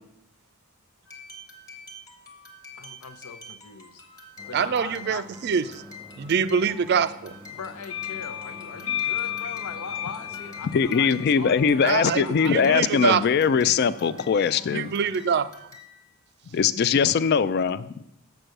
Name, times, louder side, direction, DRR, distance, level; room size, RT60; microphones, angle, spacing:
sound 1, 1.1-16.1, left 3 dB, 15° left, 1.1 m, -47 dB
voice 1, 2.7-5.3 7.5-12.9, left 5 dB, 90° left, 9 dB, 0.7 m, -40 dB
sound 2, 4.4-15.3, left 1 dB, 10° right, 0.7 m, -48 dB
voice 2, 4.5-5.8 6.2-7.3 11.8-13.2 14.7-15.5, right 6 dB, 50° right, 14 dB, 0.3 m, -25 dB
sound 3, 7.9-12.3, left 11 dB, 65° left, 0.9 m, -33 dB
voice 3, 10.7-14.9 16.5-18.0, left 6 dB, 50° left, 16 dB, 0.3 m, -21 dB
6.8 x 6.2 x 6.5 m, 0.82 s
head